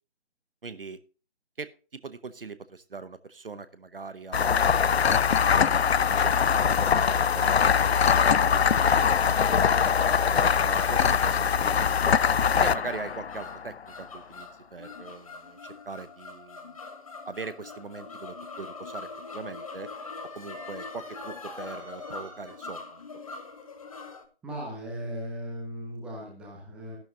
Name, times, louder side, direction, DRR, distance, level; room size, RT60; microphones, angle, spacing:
voice 1, 0.6-1.0 1.6-1.7 2.0-7.7 8.1-12.2 12.6-16.8 17.3-19.9 20.3-23.0, right 4 dB, 55° right, 14 dB, 0.8 m, -42 dB
sound 1, 4.3-13.7, left 7 dB, 70° left, 0.5 m, -22 dB
sound 2, 6.3-24.3, left 4 dB, 30° left, 1.0 m, -42 dB
sound 3, 19.0-22.8, right 4 dB, 30° right, 3.6 m, -55 dB
voice 2, 24.4-27.0, equal, 5° right, -1 dB, 1.1 m, -37 dB
12.5 x 11.5 x 2.6 m, 0.36 s
figure-of-eight pair, 150°, 33 cm